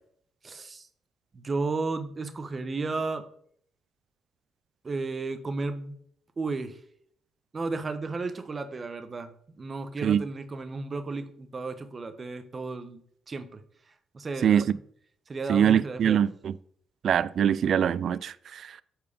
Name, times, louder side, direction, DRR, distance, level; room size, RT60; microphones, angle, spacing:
voice 1, 0.4-0.9 1.3-3.3 4.8-6.0 6.4-6.8 7.5-9.3 9.6-13.6 14.1-14.7 15.3-16.3, right 3 dB, 35° right, 0.9 m, -33 dB
voice 2, 14.4-14.8 15.5-16.5 17.0-18.8, right 9 dB, 60° right, 0.4 m, -23 dB
8.5 x 4.7 x 5.1 m
cardioid pair, 90°, 0 cm